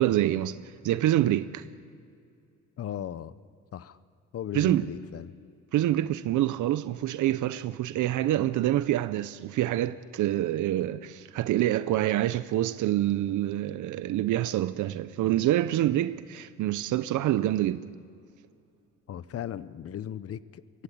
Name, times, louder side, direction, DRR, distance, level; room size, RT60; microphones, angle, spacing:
voice 1, 0.0-1.6 4.5-4.9 5.7-18.0, right 13 dB, 80° right, 0.7 m, -26 dB
voice 2, 2.8-3.3 3.7-4.0 4.3-5.3 19.1-20.8, left 10 dB, 50° left, 0.8 m, -37 dB
23.5 x 16.0 x 8.6 m
cardioid pair, 90°, 30 cm